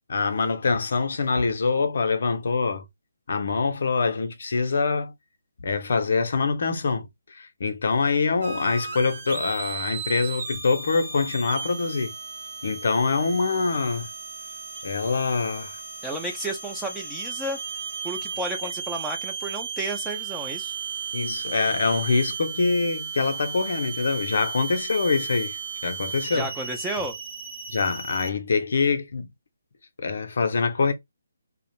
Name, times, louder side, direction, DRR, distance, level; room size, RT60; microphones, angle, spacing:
voice 1, 0.1-2.9 3.3-5.1 5.6-12.1 12.6-14.1 14.8-15.8 21.1-26.5 27.7-29.3 30.0-30.9, left 4 dB, 60° left, 0.6 m, -25 dB
sound 1, 8.4-28.3, right 6 dB, 50° right, 0.8 m, -35 dB
voice 2, 16.0-17.6 18.0-20.8 26.3-27.2, right 1 dB, 5° right, 0.4 m, -32 dB
2.3 x 2.0 x 3.0 m
figure-of-eight pair, 145°, 0 cm